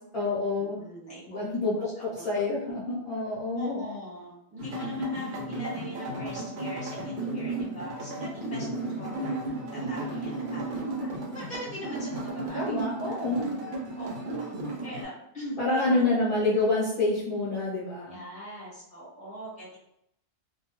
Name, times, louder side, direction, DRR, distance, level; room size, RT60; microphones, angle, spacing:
voice 1, 0.1-0.8 1.3-1.7 2.2-3.9 12.5-13.5 15.6-18.2, left 2 dB, 45° left, -9 dB, 0.9 m, -27 dB
voice 2, 0.8-1.4 2.1-2.3 3.5-12.8 13.1-13.2 14.0-14.4 14.8-16.0 18.1-19.8, left 1 dB, 5° left, -8 dB, 1.0 m, -41 dB
sound 1, 4.6-15.0, right 2 dB, 65° right, 0.5 m, -34 dB
2.2 x 2.2 x 2.9 m, 0.78 s
omnidirectional pair, 1.4 m